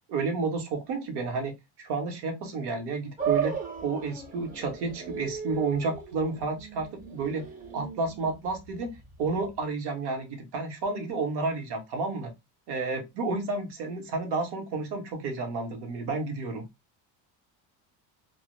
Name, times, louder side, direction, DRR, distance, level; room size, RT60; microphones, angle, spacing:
voice 1, 0.1-3.5 3.8-7.4 7.7-12.3 12.7-16.7, right 4 dB, 55° right, 5 dB, 0.8 m, -31 dB
sound 1, 3.2-9.6, right 6 dB, 20° right, 0.4 m, -36 dB
2.0 x 2.0 x 2.9 m, 0.21 s
cardioid pair, 150°, 47 cm